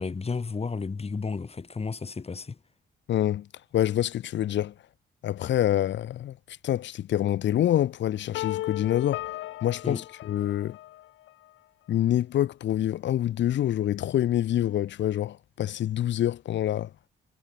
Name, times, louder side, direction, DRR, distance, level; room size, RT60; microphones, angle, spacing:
voice 1, 0.0-2.6 9.8-10.0, left 4 dB, 30° left, 4.2 m, -32 dB
voice 2, 3.1-3.5 3.7-4.7 5.2-9.3 9.6-10.8 11.9-16.9, left 12 dB, 65° left, 0.9 m, -26 dB
sound 1, 8.3-11.3, left 16 dB, 90° left, 2.1 m, -36 dB
cardioid pair, 90°, 20 cm